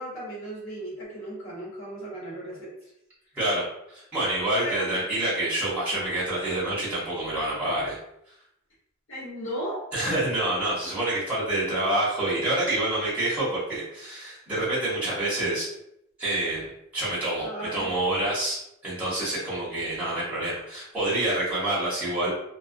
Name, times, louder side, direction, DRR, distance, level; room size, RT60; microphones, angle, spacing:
voice 1, 0.0-2.9 4.6-5.0 9.1-9.8 17.4-17.9 18.2-18.3, right 1 dB, 75° left, -7 dB, 1.1 m, -36 dB
voice 2, 3.3-8.0 9.9-15.7 16.2-16.7 16.9-17.5 17.7-18.6 18.8-22.3, right 1 dB, 10° right, -9 dB, 0.9 m, -27 dB
2.3 x 2.1 x 2.5 m, 0.78 s
head